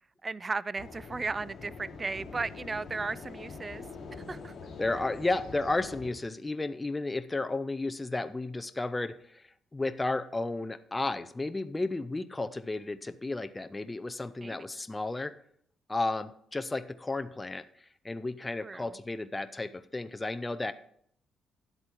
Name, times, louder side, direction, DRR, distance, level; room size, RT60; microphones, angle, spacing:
voice 1, 0.2-3.8 4.3-4.5 14.4-14.6 18.6-19.0, right 4 dB, 30° right, 0.3 m, -35 dB
sound 1, 0.8-6.1, left 4 dB, 45° left, 2.6 m, -44 dB
voice 2, 4.8-9.4 9.7-15.3 15.9-17.6 18.0-20.7, left 2 dB, 15° left, 0.6 m, -33 dB
10.5 x 8.0 x 4.5 m
cardioid pair, 90°, 0 cm